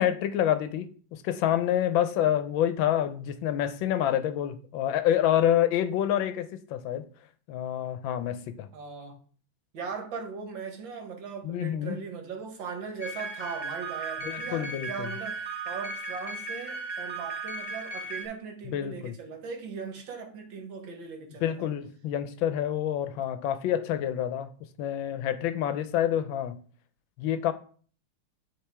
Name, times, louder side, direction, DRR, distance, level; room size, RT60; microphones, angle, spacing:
voice 1, 0.0-7.0 7.5-8.7 11.4-12.0 14.2-15.1 18.7-19.1 21.4-24.5 24.8-26.6 27.2-27.5, left 10 dB, 80° left, 1.3 m, -27 dB
voice 2, 8.7-9.2 9.7-21.7, right 5 dB, 70° right, 1.8 m, -39 dB
sound 1, 13.0-18.3, right 3 dB, 10° left, 2.7 m, -36 dB
9.7 x 3.5 x 3.4 m
omnidirectional pair, 2.2 m